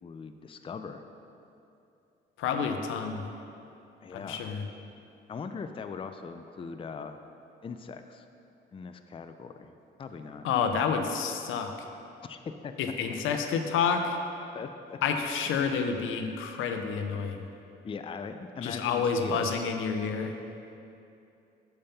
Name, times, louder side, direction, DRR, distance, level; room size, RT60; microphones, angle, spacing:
voice 1, 0.0-1.0 4.0-4.6 5.3-7.2 7.6-8.3 8.7-10.4 12.2-12.7 14.5-15.0 17.8-19.6, left 5 dB, 25° left, 7 dB, 0.4 m, -40 dB
voice 2, 2.4-3.3 4.1-4.7 10.4-11.7 12.8-14.2 15.0-17.5 18.6-20.4, left 6 dB, 85° left, 5 dB, 0.6 m, -29 dB
7.0 x 5.2 x 5.7 m, 2.7 s
cardioid pair, 90°, 20 cm